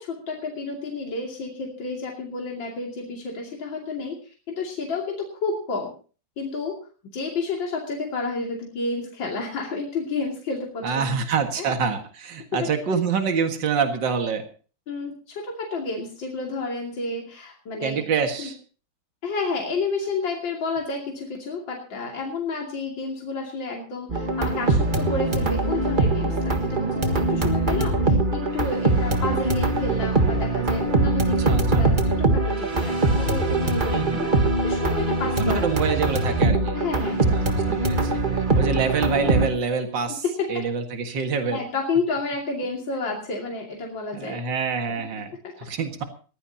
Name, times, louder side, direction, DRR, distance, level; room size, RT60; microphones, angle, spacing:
voice 1, 0.0-5.9 6.4-6.8 7.1-11.1 11.6-11.7 12.5-12.7 14.9-18.0 18.4-18.5 19.2-31.9 32.2-34.3 34.6-35.7 36.8-37.4 40.5-40.6 41.5-44.4 44.9-45.0 45.4-45.5, left 3 dB, 70° left, -1 dB, 3.4 m, -30 dB
voice 2, 10.8-14.4 17.8-18.6 31.5-31.9 33.9-34.2 35.4-40.2 40.5-41.6 44.1-46.0, right 6 dB, 65° right, 5 dB, 2.5 m, -26 dB
sound 1, 24.1-39.5, right 2 dB, 25° right, 1.6 m, -22 dB
20.5 x 16.0 x 2.9 m, 0.38 s
omnidirectional pair, 2.1 m